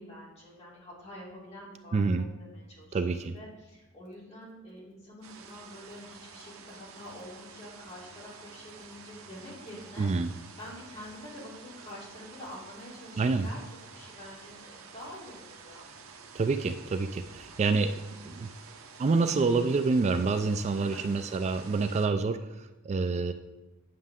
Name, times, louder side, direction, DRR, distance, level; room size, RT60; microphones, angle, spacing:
voice 1, 0.0-10.1 10.6-15.9 20.7-21.1, left 1 dB, 35° left, -6 dB, 3.1 m, -47 dB
voice 2, 1.9-2.3 2.9-3.3 10.0-10.3 13.2-13.5 16.3-18.0 18.2-18.5 19.0-23.3, right 4 dB, 30° right, 9 dB, 0.3 m, -27 dB
sound 1, 5.2-22.1, right 5 dB, 85° right, 0.9 m, -50 dB
9.5 x 6.4 x 3.6 m, 1.1 s
head